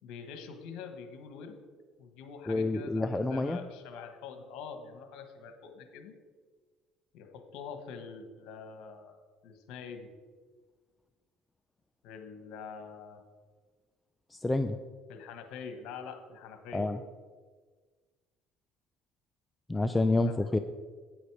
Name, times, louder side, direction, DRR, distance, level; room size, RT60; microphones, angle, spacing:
voice 1, 0.0-1.6 2.0-6.2 7.1-9.2 9.4-10.1 12.0-13.2 15.1-16.9 20.2-20.4, left 6 dB, 75° left, 7 dB, 1.5 m, -45 dB
voice 2, 2.5-3.6 14.4-14.8 16.7-17.0 19.7-20.6, left 2 dB, 15° left, 9 dB, 0.5 m, -28 dB
9.7 x 8.1 x 4.9 m, 1.5 s
supercardioid pair, 90°, 0 cm